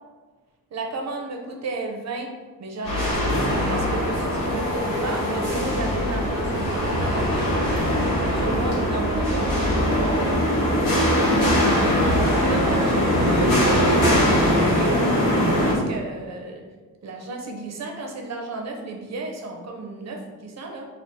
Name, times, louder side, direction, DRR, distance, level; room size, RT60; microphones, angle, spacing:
voice 1, 0.7-2.3 2.6-7.9 8.3-9.5 10.0-10.5 12.4-15.0 15.6-16.6 17.0-20.9, right 2 dB, 50° right, 2 dB, 0.6 m, -33 dB
sound 1, 2.8-15.7, equal, 65° left, 1.2 m, -21 dB
2.6 x 2.4 x 3.6 m, 1.3 s
cardioid pair, 75°, 34 cm